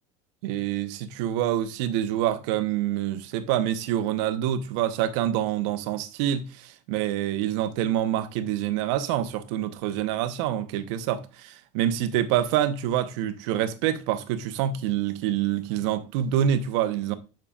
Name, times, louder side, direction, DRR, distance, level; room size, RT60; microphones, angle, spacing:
voice 1, 0.4-17.1, right 11 dB, 75° right, 1.0 m, -26 dB
10.0 x 5.9 x 2.4 m
supercardioid pair, 115°, 15 cm